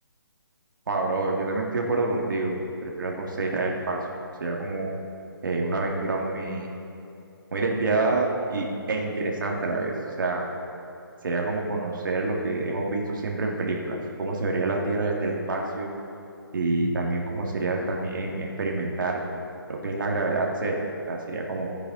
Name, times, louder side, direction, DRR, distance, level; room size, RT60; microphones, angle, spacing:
voice 1, 0.9-4.0 4.4-4.9 5.4-6.7 7.5-9.9 10.2-10.4 11.2-15.9 16.5-19.2 19.7-20.8 21.1-21.7, right 2 dB, 55° right, -1 dB, 2.0 m, -27 dB
15.5 x 9.8 x 3.8 m, 2.7 s
hypercardioid pair, 165°, 13 cm